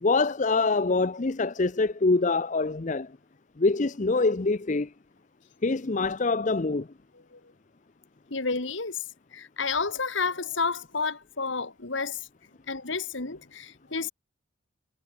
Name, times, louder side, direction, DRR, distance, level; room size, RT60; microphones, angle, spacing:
voice 1, 0.0-3.2 3.6-4.9 5.6-6.9, left 3 dB, 40° left, 0.6 m, -25 dB
voice 2, 8.3-9.0 9.3-12.3 12.7-14.1, left 4 dB, 65° left, 2.0 m, -30 dB
head